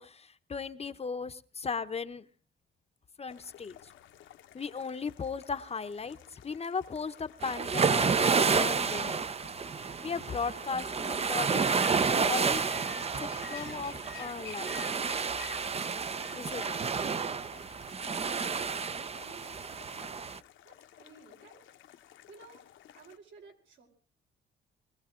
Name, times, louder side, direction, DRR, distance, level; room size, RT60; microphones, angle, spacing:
voice 1, 0.0-2.3 3.2-3.9 4.5-9.2 10.0-11.9 12.2-12.7 13.2-14.8 16.3-16.8, left 5 dB, 30° left, 11 dB, 0.9 m, -37 dB
sound 1, 3.3-23.2, left 11 dB, 80° left, 1.2 m, -52 dB
sound 2, 7.4-20.4, right 5 dB, 30° right, 0.7 m, -30 dB
voice 2, 18.9-19.8 20.6-21.6 22.3-22.6 22.9-23.9, right 4 dB, 70° right, 2 dB, 5.5 m, -55 dB
22.0 x 16.0 x 3.8 m, 0.40 s
cardioid pair, 90°, 20 cm